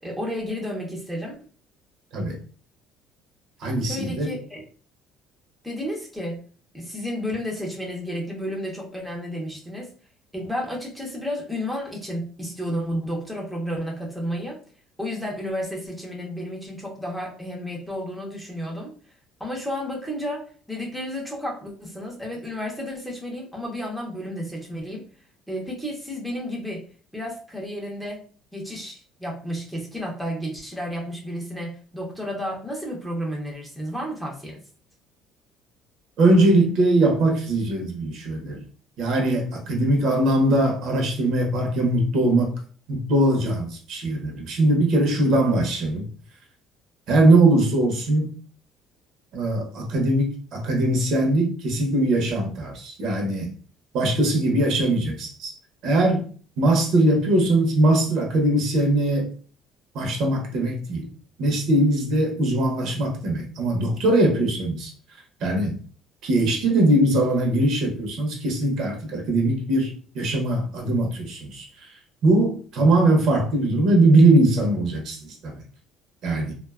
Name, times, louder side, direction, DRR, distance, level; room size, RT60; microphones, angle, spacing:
voice 1, 0.0-1.4 3.8-4.6 5.6-6.4 6.7-9.9 10.3-14.6 15.0-18.9 19.4-25.0 25.5-26.9 27.1-28.2 28.5-34.6, equal, ahead, -2 dB, 0.6 m, -32 dB
voice 2, 3.6-4.3 36.2-38.6 39.0-42.6 42.9-46.1 47.1-48.3 49.3-53.5 53.9-55.5 55.8-56.2 56.6-59.3 59.9-61.1 61.4-64.9 65.4-65.8 66.2-71.9 72.2-75.6 76.2-76.5, right 1 dB, 60° right, 2 dB, 0.7 m, -21 dB
2.5 x 2.2 x 2.3 m, 0.41 s
cardioid pair, 140°, 0 cm